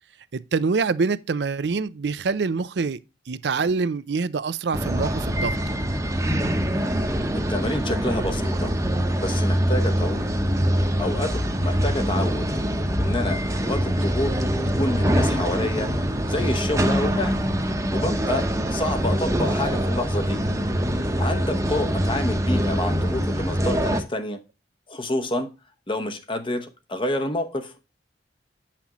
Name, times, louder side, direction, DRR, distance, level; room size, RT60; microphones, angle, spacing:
voice 1, 0.3-3.0 3.3-5.6, right 4 dB, 70° right, 0.5 m, -25 dB
sound 1, 4.7-24.0, equal, 20° right, 0.9 m, -24 dB
voice 2, 7.3-8.7 9.2-10.2 11.0-12.5 13.0-14.4 14.8-15.9 16.3-17.4 17.9-20.4 21.2-24.4 24.9-25.5 25.9-27.7, left 1 dB, 30° left, 1.0 m, -28 dB
8.5 x 5.8 x 3.0 m
head